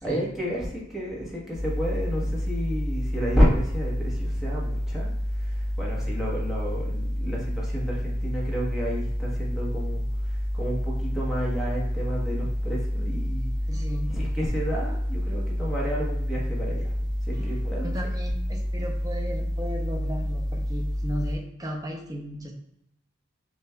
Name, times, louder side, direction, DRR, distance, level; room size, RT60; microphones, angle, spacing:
voice 1, 0.0-13.5 14.1-16.9 17.2-17.9, equal, ahead, -6 dB, 1.0 m, -30 dB
sound 1, 1.5-21.3, equal, 20° left, 1.5 m, -29 dB
voice 2, 13.7-14.1 17.4-17.5 17.8-22.5, equal, 20° right, 0 dB, 0.6 m, -35 dB
6.6 x 2.5 x 2.2 m, 0.79 s
head